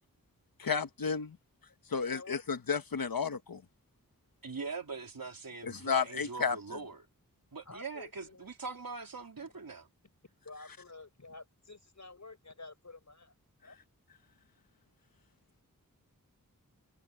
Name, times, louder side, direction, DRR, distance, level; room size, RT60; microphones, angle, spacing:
voice 1, 0.6-1.4 1.9-3.6 5.6-6.8, left 6 dB, 85° left, 1.3 m, -32 dB
voice 2, 2.1-2.4 7.6-8.5 9.4-9.5 10.4-13.3 13.6-13.8, left 3 dB, 55° left, 5.1 m, -50 dB
voice 3, 4.4-7.0 7.5-9.9, right 4 dB, 85° right, 3.4 m, -42 dB
wide cardioid pair, 45°, 34 cm